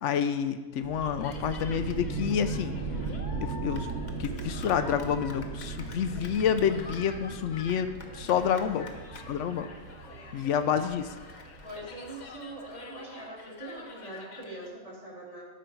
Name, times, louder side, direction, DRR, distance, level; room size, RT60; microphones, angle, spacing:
voice 1, 0.0-2.8 3.4-3.9 4.2-8.9 9.3-9.7 10.3-11.1, left 8 dB, 80° left, 10 dB, 0.9 m, -28 dB
sound 1, 0.8-12.3, right 4 dB, 85° right, 1.2 m, -38 dB
Cheering, 1.0-14.7, left 3 dB, 40° left, 0.9 m, -47 dB
voice 2, 8.3-9.0 10.4-10.9 11.6-15.4, right 1 dB, 30° right, -5 dB, 2.1 m, -43 dB
12.0 x 5.1 x 4.5 m, 1.3 s
omnidirectional pair, 1.2 m